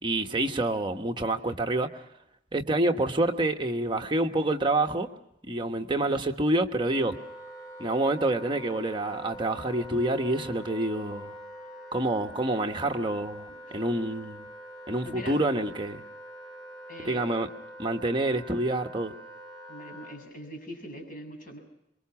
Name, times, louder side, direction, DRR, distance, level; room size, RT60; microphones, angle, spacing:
voice 1, 0.0-2.0 2.5-5.1 5.4-7.2 7.8-11.3 11.9-14.4 14.9-16.0 17.0-17.5 17.8-19.1, right 2 dB, 25° right, 3 dB, 1.4 m, -27 dB
Wind instrument woodwind instrument, 6.9-20.2, equal, 25° left, 5.9 m, -45 dB
voice 2, 15.0-15.4 16.9-17.3 19.7-21.6, equal, 50° left, 2 dB, 7.0 m, -42 dB
26.0 x 23.5 x 5.9 m, 0.82 s
head